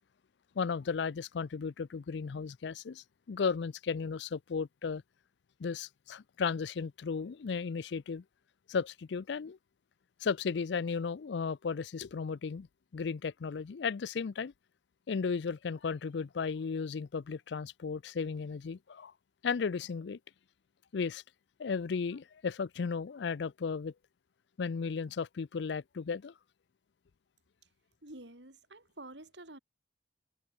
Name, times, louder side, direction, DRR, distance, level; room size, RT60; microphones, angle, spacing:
voice 1, 0.6-5.0 5.6-8.2 8.7-9.6 10.2-12.7 12.9-14.5 15.1-19.1 19.4-20.2 20.9-21.2 21.6-23.9 24.6-26.3, left 5 dB, 75° left, 0.4 m, -35 dB
voice 2, 28.0-29.6, right 2 dB, 80° right, 4.7 m, -49 dB
head